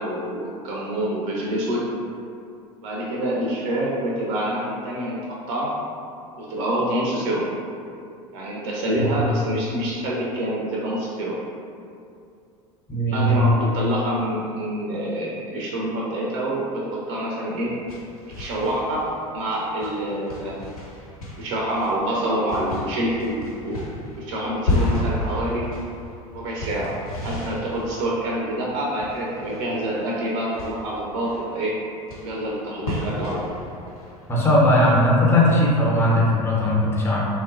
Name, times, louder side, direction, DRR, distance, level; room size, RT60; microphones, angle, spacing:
voice 1, 0.0-1.8 2.8-5.2 5.5-5.7 6.4-7.4 8.3-11.4 13.1-17.7 18.4-19.0 19.3-20.6 21.4-23.9 24.2-25.6 26.3-31.7 32.2-33.4, right 1 dB, 50° right, -4 dB, 0.4 m, -26 dB
voice 2, 12.9-13.4 34.3-37.3, left 1 dB, 10° left, -5 dB, 0.5 m, -18 dB
sound 1, 17.5-35.6, left 1 dB, 75° left, 0.6 m, -33 dB
2.8 x 2.1 x 2.3 m, 2.5 s
figure-of-eight pair, 75°, 19 cm